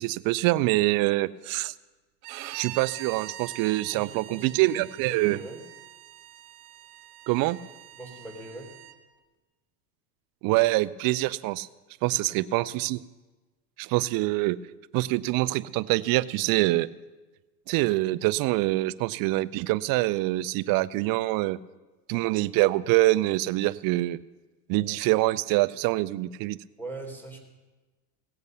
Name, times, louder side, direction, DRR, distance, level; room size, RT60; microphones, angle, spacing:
voice 1, 0.0-1.7 2.5-5.4 7.3-7.6 10.4-11.7 12.0-13.0 13.8-14.6 14.9-16.9 17.7-21.6 22.1-24.2 24.7-26.6, right 19 dB, 50° right, 17 dB, 0.6 m, -25 dB
Bowed string instrument, 2.2-9.0, right 14 dB, 70° right, 1.4 m, -44 dB
voice 2, 3.9-4.5 5.0-5.6 8.0-8.7 12.3-12.4 26.8-27.4, right 2 dB, 5° left, 3 dB, 3.8 m, -41 dB
17.5 x 8.1 x 6.8 m, 1.2 s
supercardioid pair, 100°, 45 cm